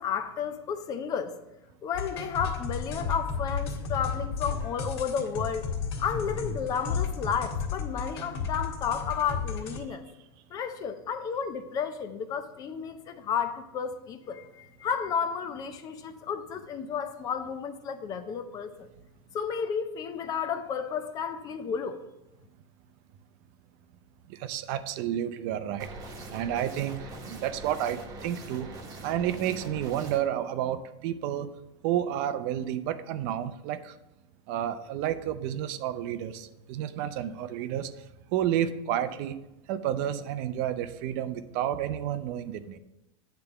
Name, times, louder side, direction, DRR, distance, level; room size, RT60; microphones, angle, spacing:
voice 1, 0.0-1.3 1.8-5.7 6.0-10.0 10.5-18.9 19.3-22.0, left 7 dB, 25° left, 0.5 m, -32 dB
sound 1, 1.9-9.8, left 5 dB, 65° left, 1.7 m, -33 dB
voice 2, 24.3-25.9 26.3-28.7 29.0-31.5 31.8-33.9 34.5-37.9 38.3-39.4 39.7-42.8, right 11 dB, 45° right, 0.6 m, -30 dB
sound 2, 25.8-30.2, right 2 dB, 25° right, 1.1 m, -43 dB
8.9 x 3.4 x 6.8 m
supercardioid pair, 150°, 14 cm